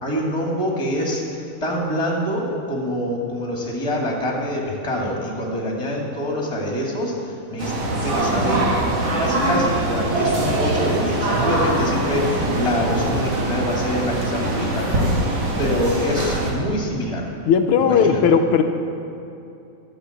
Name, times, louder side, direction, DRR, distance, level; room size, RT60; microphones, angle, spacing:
voice 1, 0.0-7.7 8.0-8.6 9.2-17.3 17.8-18.2, equal, 15° left, -2 dB, 1.9 m, -25 dB
sound 1, 7.6-16.5, right 1 dB, 65° right, 2.4 m, -22 dB
voice 2, 17.5-18.6, left 6 dB, 85° left, 6 dB, 1.5 m, -16 dB
12.0 x 6.6 x 7.8 m, 2.7 s
omnidirectional pair, 2.3 m